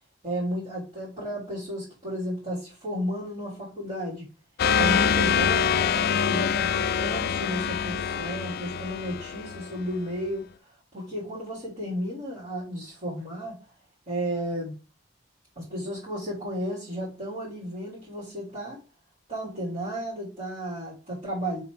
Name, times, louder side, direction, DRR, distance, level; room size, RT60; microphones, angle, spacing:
voice 1, 0.2-4.3 4.8-10.5 10.9-13.6 14.1-14.7 15.6-18.8 19.3-21.6, equal, 35° right, -7 dB, 3.6 m, -33 dB
sound 1, 4.6-10.0, left 7 dB, 55° left, 0.4 m, -25 dB
6.7 x 3.9 x 4.9 m, 0.34 s
head